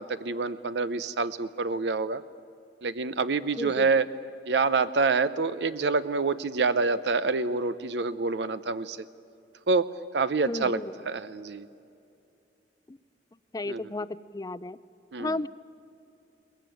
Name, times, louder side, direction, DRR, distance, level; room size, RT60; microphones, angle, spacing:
voice 1, 0.0-2.2 2.8-4.1 4.5-9.0 9.7-11.7 13.7-13.8 15.1-15.4, right 4 dB, 70° right, 13 dB, 0.6 m, -27 dB
voice 2, 3.6-3.9 10.4-10.9 12.9-13.0 13.5-14.1 14.3-14.8 15.2-15.5, left 2 dB, 20° left, 17 dB, 0.5 m, -33 dB
22.0 x 20.5 x 9.2 m, 2.7 s
head